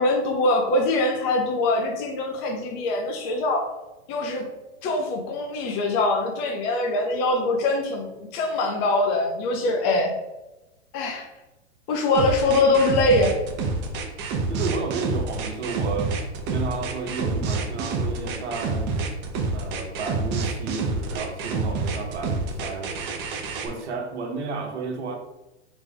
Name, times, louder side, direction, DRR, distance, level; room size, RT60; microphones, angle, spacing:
voice 1, 0.0-3.7 4.1-4.5 4.8-10.1 10.9-11.3 11.9-13.3, left 2 dB, 35° left, 2 dB, 0.8 m, -23 dB
sound 1, 12.1-23.7, right 3 dB, 30° right, 0.9 m, -27 dB
voice 2, 14.5-16.2 16.5-18.9 19.5-23.2 23.6-25.2, right 4 dB, 70° right, 3 dB, 1.2 m, -32 dB
4.0 x 3.4 x 3.4 m, 0.99 s
hypercardioid pair, 115°, 35 cm